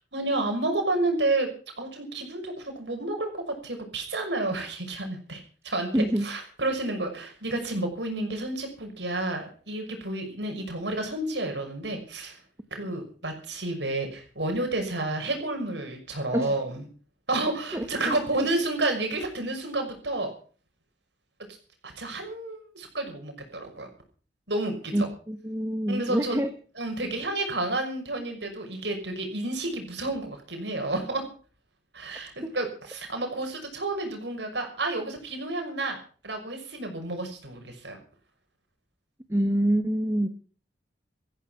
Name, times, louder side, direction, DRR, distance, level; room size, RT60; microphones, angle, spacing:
voice 1, 0.1-1.5 1.8-3.3 3.6-12.4 12.7-16.8 17.3-20.3 21.8-23.9 24.5-25.1 25.9-26.4 26.8-31.3 31.9-36.0 36.2-38.0, right 2 dB, 85° right, 4 dB, 6.2 m, -30 dB
voice 2, 5.9-6.3 16.3-16.5 17.7-18.5 24.9-26.5 32.4-32.5 39.3-40.3, right 1 dB, 15° right, 8 dB, 1.3 m, -26 dB
15.0 x 15.0 x 5.9 m, 0.42 s
head